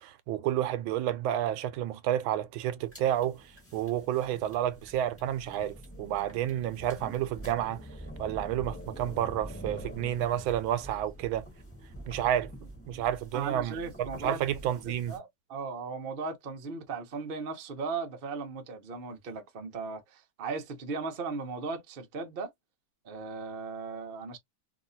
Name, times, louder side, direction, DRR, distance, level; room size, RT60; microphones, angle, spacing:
voice 1, 0.0-7.9 8.2-11.5 12.1-12.5 12.9-15.2, right 11 dB, 90° right, 1.4 m, -30 dB
sound 1, 2.8-15.2, right 1 dB, 10° left, 1.0 m, -46 dB
voice 2, 13.3-14.4 14.9-22.5 23.0-24.4, right 4 dB, 50° right, 0.6 m, -37 dB
3.0 x 2.8 x 2.6 m
omnidirectional pair, 2.1 m